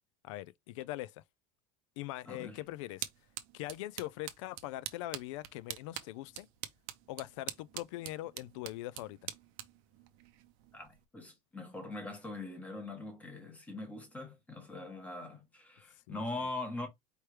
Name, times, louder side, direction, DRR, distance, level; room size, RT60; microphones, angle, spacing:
voice 1, 0.2-1.2 2.0-3.1 3.5-6.5 7.1-9.2 16.1-16.2, left 16 dB, 70° left, 0.4 m, -42 dB
voice 2, 2.3-2.6 10.7-10.9 11.1-16.9, left 2 dB, 10° left, 1.0 m, -42 dB
sound 1, 2.3-11.0, right 14 dB, 50° right, 0.6 m, -46 dB
4.7 x 3.3 x 3.2 m
cardioid pair, 175°, 16 cm